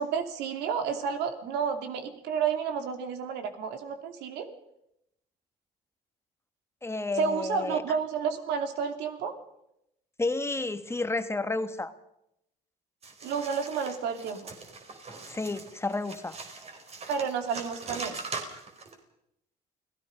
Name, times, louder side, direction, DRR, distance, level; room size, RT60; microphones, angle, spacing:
voice 1, 0.0-4.5 7.1-9.3 13.2-14.5 17.1-18.2, right 6 dB, 90° right, 7 dB, 2.9 m, -31 dB
voice 2, 6.8-7.8 10.2-11.9 15.3-16.3, left 2 dB, 15° left, 9 dB, 1.5 m, -31 dB
sound 1, 13.0-18.9, right 3 dB, 40° right, 4.4 m, -41 dB
29.0 x 18.0 x 5.3 m, 0.80 s
cardioid pair, 110°, 17 cm